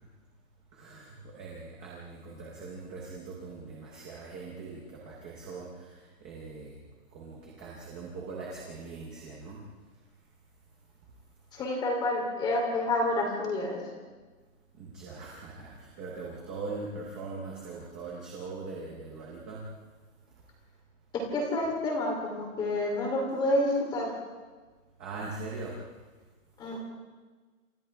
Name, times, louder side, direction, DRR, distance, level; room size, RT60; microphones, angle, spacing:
voice 1, 0.7-6.8 7.1-9.7 14.7-19.7 20.3-20.5 25.0-25.9, right 3 dB, 5° right, -3 dB, 0.7 m, -41 dB
voice 2, 11.5-13.8 21.1-24.1 26.6-26.8, left 1 dB, 10° left, 1 dB, 3.1 m, -29 dB
28.5 x 27.5 x 3.4 m, 1.4 s
hypercardioid pair, 180°, 42 cm